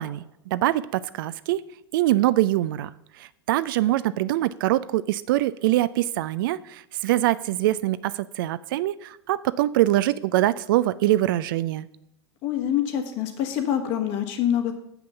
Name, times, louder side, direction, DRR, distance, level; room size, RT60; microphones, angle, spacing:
voice 1, 0.0-1.6 1.9-2.9 3.2-11.9, right 15 dB, 50° right, 16 dB, 0.4 m, -24 dB
voice 2, 12.4-14.7, left 10 dB, 45° left, 5 dB, 1.5 m, -25 dB
7.5 x 5.7 x 6.8 m, 0.78 s
figure-of-eight pair, 90°, 14 cm